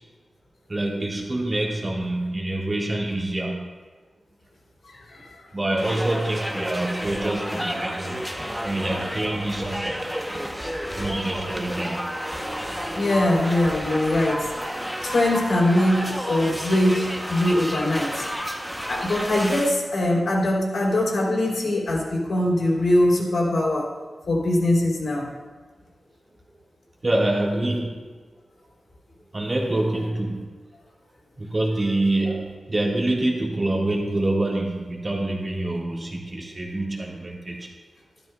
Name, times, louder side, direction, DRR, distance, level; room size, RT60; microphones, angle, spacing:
voice 1, 0.7-3.7 5.5-8.2 8.6-10.1 11.0-12.3 27.0-28.0 29.3-30.5 31.4-37.7, right 1 dB, 30° right, -3 dB, 1.6 m, -26 dB
voice 2, 4.9-5.3 8.4-8.5 12.9-14.4 15.0-18.3 18.9-23.9 24.3-25.3, left 1 dB, 70° left, -4 dB, 3.2 m, -22 dB
sound 1, 5.8-19.7, equal, ahead, 0.8 m, -31 dB
13.0 x 12.0 x 2.3 m, 1.4 s
wide cardioid pair, 145°, 0 cm